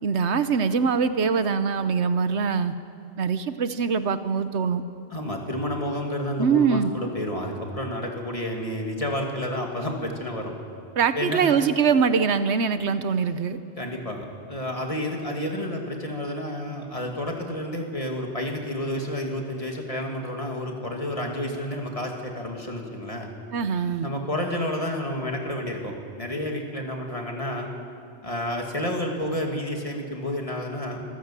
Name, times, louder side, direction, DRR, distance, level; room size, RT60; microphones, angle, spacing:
voice 1, 0.0-2.7 3.2-4.8 6.4-6.9 11.0-13.6 23.5-24.1, right 6 dB, 75° right, 11 dB, 1.2 m, -23 dB
voice 2, 5.1-10.5 11.1-11.6 13.8-23.3 24.0-27.7 28.2-31.0, left 1 dB, 30° left, 1 dB, 2.7 m, -30 dB
25.5 x 15.5 x 7.6 m, 2.5 s
omnidirectional pair, 1.2 m